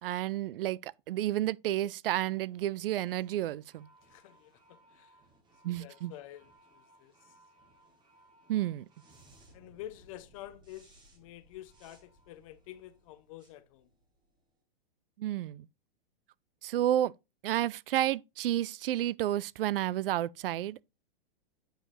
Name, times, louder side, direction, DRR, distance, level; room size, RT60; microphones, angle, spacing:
voice 1, 0.0-3.9 5.6-6.1 8.5-8.9 15.2-15.7 16.6-17.1 17.4-20.8, right 13 dB, 70° right, 0.4 m, -31 dB
sound 1, 2.1-14.5, right 1 dB, 15° right, 1.4 m, -63 dB
voice 2, 4.0-5.2 5.6-7.3 9.5-13.9, left 13 dB, 35° left, 0.7 m, -49 dB
8.8 x 5.0 x 3.2 m
hypercardioid pair, 155°, 30 cm